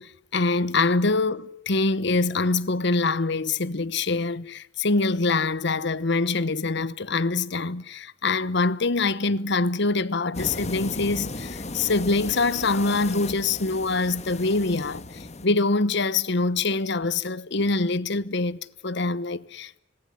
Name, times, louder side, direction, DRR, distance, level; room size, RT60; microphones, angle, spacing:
voice 1, 0.0-19.8, left 3 dB, 65° left, 1.1 m, -24 dB
sound 1, 10.3-15.5, left 3 dB, 35° left, 1.5 m, -36 dB
26.5 x 20.0 x 9.6 m
head